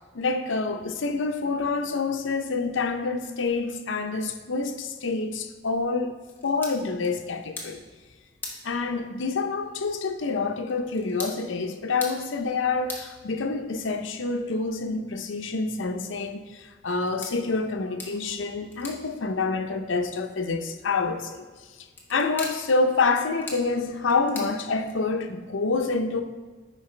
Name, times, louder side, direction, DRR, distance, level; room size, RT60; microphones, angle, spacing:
voice 1, 0.1-7.8 8.6-21.5 22.1-26.2, left 4 dB, 85° left, 0.6 m, -27 dB
sound 1, 6.2-25.3, left 2 dB, 10° left, 1.0 m, -45 dB
9.6 x 5.4 x 3.2 m
head